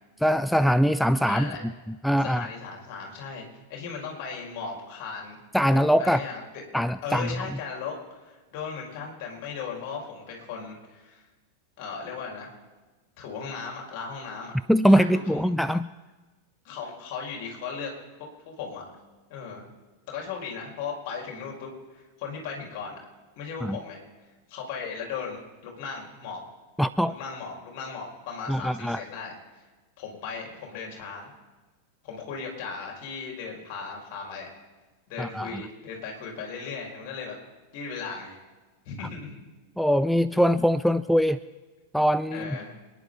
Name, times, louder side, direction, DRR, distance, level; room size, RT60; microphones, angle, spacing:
voice 1, 0.2-1.5 2.0-2.5 5.5-6.2 6.7-7.3 14.7-15.9 23.6-23.8 26.8-27.2 28.5-29.0 35.2-35.6 39.8-41.4 41.9-42.6, equal, ahead, 14 dB, 0.4 m, -22 dB
voice 2, 1.3-1.6 2.2-3.4 3.7-5.4 5.7-6.6 7.0-11.2 11.8-12.5 13.2-14.5 14.9-15.4 16.6-17.9 18.5-18.8 19.3-19.6 20.1-23.0 23.4-24.0 24.5-26.4 27.1-29.3 30.0-31.3 32.0-34.5 35.1-37.4 37.7-38.4 38.9-39.4 42.3-42.8, left 5 dB, 45° left, 0 dB, 4.1 m, -37 dB
26.5 x 10.5 x 3.9 m, 1.3 s
figure-of-eight pair, 90°, 0 cm